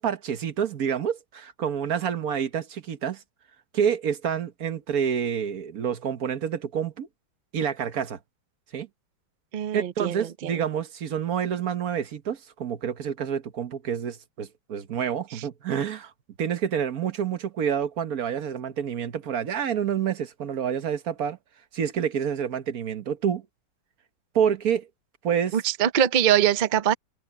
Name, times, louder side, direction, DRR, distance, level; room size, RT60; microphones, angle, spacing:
voice 1, 0.0-3.2 3.7-7.1 7.5-8.2 8.7-8.9 9.7-16.1 16.4-21.4 21.7-23.4 24.3-24.9 25.2-25.6, right 8 dB, 60° right, 1.5 m, -28 dB
voice 2, 9.5-10.6 15.3-15.4 25.5-26.9, right 10 dB, 75° right, 0.4 m, -23 dB
omnidirectional pair, 1.8 m